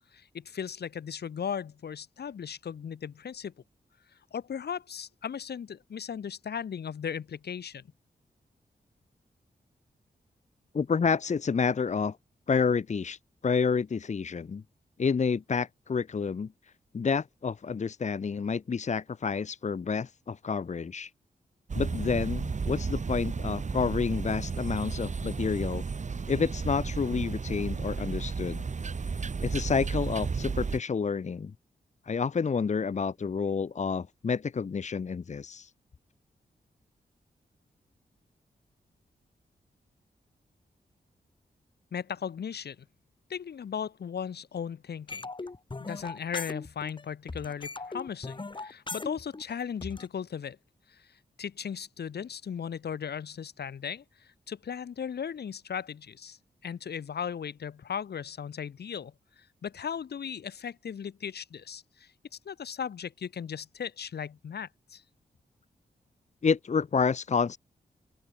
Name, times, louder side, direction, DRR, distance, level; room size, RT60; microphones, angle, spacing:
voice 1, 0.1-3.5 4.3-7.9 41.9-42.9 43.3-45.3 45.8-50.6 50.9-62.1 62.4-65.0, left 7 dB, 85° left, 3.3 m, -37 dB
voice 2, 10.7-12.2 12.5-14.6 15.0-16.5 16.9-21.1 21.7-25.8 26.3-28.6 29.4-31.5 32.1-35.7 66.4-67.6, left 5 dB, 45° left, 1.1 m, -29 dB
sound 1, 21.7-30.8, right 5 dB, 45° right, 2.8 m, -33 dB
sound 2, 45.1-47.0 47.3-50.1, left 3 dB, 30° left, 4.2 m, -39 dB
open air
wide cardioid pair, 115°, 16 cm